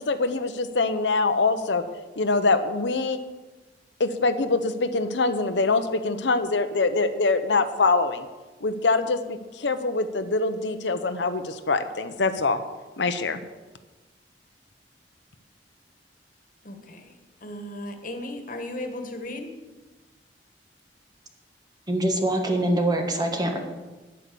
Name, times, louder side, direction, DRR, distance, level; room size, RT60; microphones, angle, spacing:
voice 1, 0.0-1.8 2.2-3.2 4.0-8.3 8.6-12.6 13.0-13.4, left 3 dB, 90° left, 9 dB, 0.8 m, -24 dB
voice 2, 16.6-17.1 17.4-19.5, left 1 dB, 50° left, 5 dB, 1.6 m, -36 dB
voice 3, 21.9-23.6, right 1 dB, 25° right, 3 dB, 1.6 m, -24 dB
10.5 x 8.5 x 6.9 m, 1.2 s
head